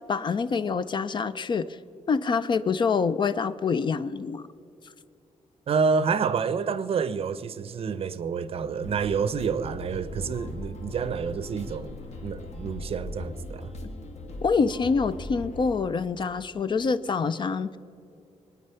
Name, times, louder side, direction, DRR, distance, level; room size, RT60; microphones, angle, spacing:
voice 1, 0.1-1.8 2.1-4.5 14.4-17.8, left 5 dB, 35° left, 0.4 m, -26 dB
voice 2, 5.7-13.7, right 5 dB, 50° right, 0.6 m, -28 dB
sound 1, 8.8-15.8, left 1 dB, 60° left, 1.6 m, -39 dB
23.0 x 9.6 x 5.6 m
wide cardioid pair, 170°, 13 cm